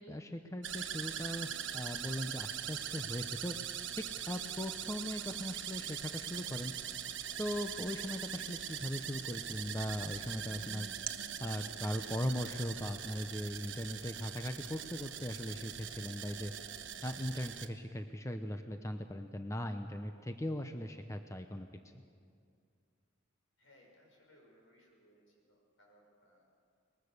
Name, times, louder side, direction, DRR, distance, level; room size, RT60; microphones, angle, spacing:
voice 1, 0.0-3.5 4.0-6.7 7.4-10.9 11.4-16.5 17.0-21.7, equal, 15° left, 7 dB, 0.7 m, -39 dB
sound 1, 0.6-17.7, right 9 dB, 70° right, 1.1 m, -42 dB
voice 2, 23.6-26.4, equal, 80° left, 0 dB, 6.2 m, -65 dB
22.5 x 20.5 x 6.6 m, 2.3 s
head